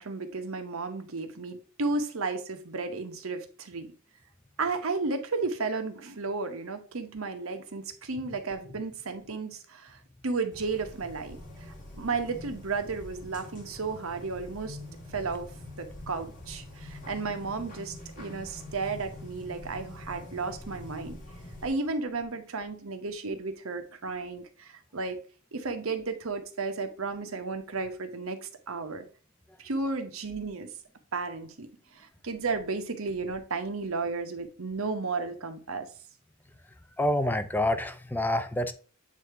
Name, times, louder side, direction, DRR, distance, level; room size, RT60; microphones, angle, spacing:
voice 1, 0.0-3.9 4.6-11.4 12.0-14.8 15.1-21.2 21.6-25.2 25.5-29.1 29.6-30.7 31.1-31.7 31.9-35.9, right 4 dB, 70° right, 7 dB, 1.0 m, -33 dB
sound 1, 10.5-21.7, left 1 dB, 40° left, 1.7 m, -45 dB
voice 2, 37.0-38.7, left 1 dB, 10° left, 9 dB, 0.5 m, -27 dB
8.2 x 2.8 x 4.6 m, 0.39 s
head